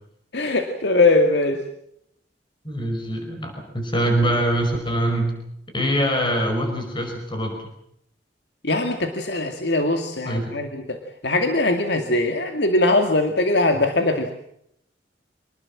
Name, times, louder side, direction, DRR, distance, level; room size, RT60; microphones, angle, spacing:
voice 1, 0.3-1.6 8.6-11.0 11.2-14.3, left 2 dB, 70° left, 5 dB, 2.3 m, -21 dB
voice 2, 2.6-5.3 5.7-7.7 10.2-10.5, right 1 dB, 25° left, 3 dB, 5.5 m, -23 dB
26.5 x 19.5 x 7.4 m, 0.74 s
head